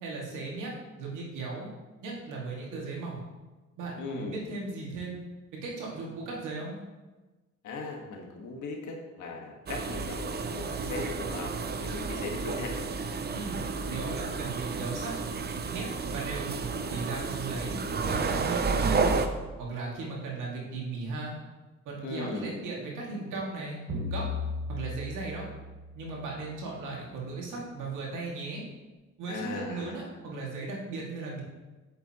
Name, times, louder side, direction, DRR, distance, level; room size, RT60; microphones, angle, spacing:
voice 1, 0.0-0.7 1.0-1.7 2.0-3.2 3.8-5.2 5.5-6.8 13.3-15.2 15.7-16.5 16.9-17.8 18.0-19.2 19.6-21.3 21.9-23.8 24.1-24.3 24.7-25.5 26.0-28.6 29.2-31.4, right 3 dB, 85° right, -3 dB, 2.2 m, -37 dB
voice 2, 4.0-4.4 7.6-12.8 22.0-22.6 29.3-30.1, left 3 dB, 75° left, 1 dB, 1.6 m, -38 dB
sound 1, 9.7-19.3, right 4 dB, 35° right, 0.6 m, -31 dB
sound 2, 23.9-26.6, left 3 dB, 65° right, 2.0 m, -36 dB
8.2 x 6.7 x 3.0 m, 1.2 s
cardioid pair, 90°, 30 cm